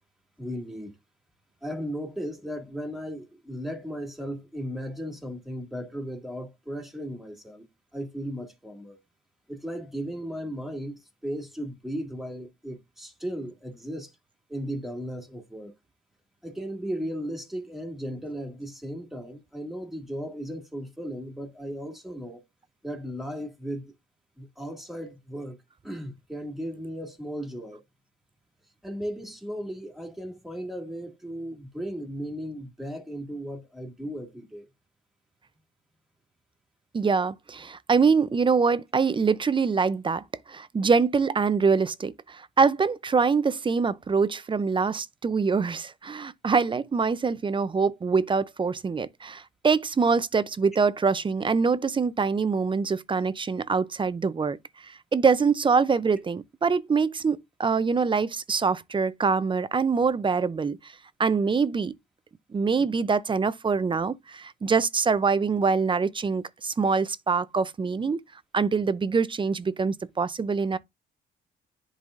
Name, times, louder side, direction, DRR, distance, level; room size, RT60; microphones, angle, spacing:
voice 1, 0.4-0.9 1.6-7.7 7.9-9.0 9.5-14.1 14.5-15.7 16.4-22.4 22.8-23.9 24.4-25.6 25.8-27.8 28.8-34.7, equal, ahead, 2.0 m, -36 dB
voice 2, 36.9-54.6 54.8-60.9 61.2-61.9 62.5-68.2 68.5-70.8, right 5 dB, 25° right, 0.5 m, -24 dB
10.5 x 4.0 x 2.5 m
cardioid pair, 90°, 20 cm